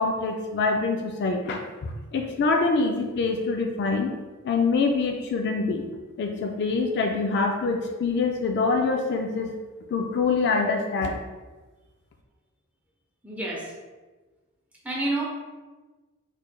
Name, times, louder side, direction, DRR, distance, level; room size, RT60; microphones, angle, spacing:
voice 1, 0.0-4.1 4.4-5.9 6.2-9.5 9.9-11.2, left 4 dB, 50° left, 3 dB, 0.3 m, -25 dB
voice 2, 13.2-13.7 14.8-15.2, right 2 dB, 5° right, -5 dB, 0.8 m, -28 dB
4.3 x 3.1 x 2.2 m, 1.3 s
head